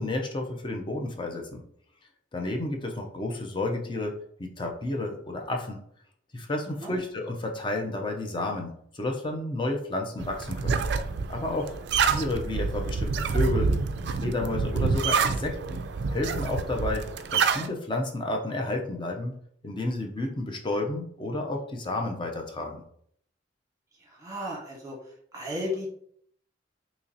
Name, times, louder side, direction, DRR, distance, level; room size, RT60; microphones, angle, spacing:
voice 1, 0.0-1.6 2.3-5.8 6.3-10.8 11.3-11.8 12.0-13.7 14.1-15.8 16.1-19.4 19.6-22.8, left 2 dB, 25° left, 2 dB, 0.5 m, -31 dB
sound 1, 10.2-17.7, right 5 dB, 65° right, 0.3 m, -27 dB
voice 2, 24.1-25.0 25.3-25.9, left 1 dB, 20° right, -3 dB, 1.1 m, -34 dB
3.0 x 2.8 x 3.8 m, 0.65 s
head